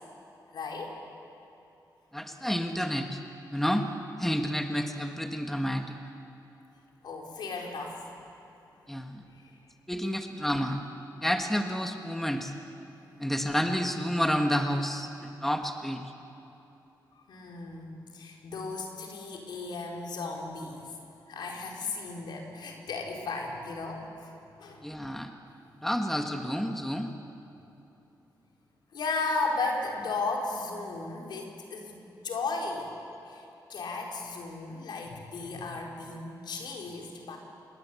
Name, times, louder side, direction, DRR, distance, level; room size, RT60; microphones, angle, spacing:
voice 1, 0.5-1.0 7.0-8.1 17.3-20.9 21.3-24.0 24.6-24.9 28.9-32.9 33.3-33.4 33.7-37.4, left 3 dB, 80° left, 0 dB, 4.5 m, -35 dB
voice 2, 2.1-3.2 3.5-3.9 4.2-6.0 8.9-9.2 9.9-10.8 11.2-12.5 13.2-16.0 24.8-25.3 25.8-27.1, equal, 5° left, 4 dB, 1.6 m, -29 dB
27.0 x 22.0 x 8.5 m, 3.0 s
cardioid pair, 105°, 8 cm